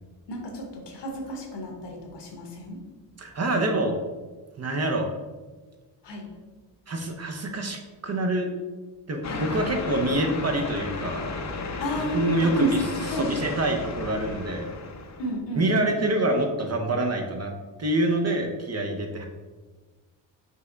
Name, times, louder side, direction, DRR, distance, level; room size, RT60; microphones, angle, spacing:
voice 1, 0.3-2.8 6.0-6.3 9.2-9.8 11.8-13.3 15.2-16.1, right 1 dB, 60° left, 2 dB, 1.1 m, -31 dB
voice 2, 3.2-3.9 4.6-5.1 6.9-8.5 9.1-11.2 12.1-12.8 13.2-14.7 15.6-17.5 17.8-19.3, right 1 dB, 35° right, 3 dB, 0.7 m, -26 dB
sound 1, 9.2-15.4, left 3 dB, 35° left, 0.7 m, -34 dB
5.5 x 2.2 x 3.8 m, 1.3 s
supercardioid pair, 50°, 48 cm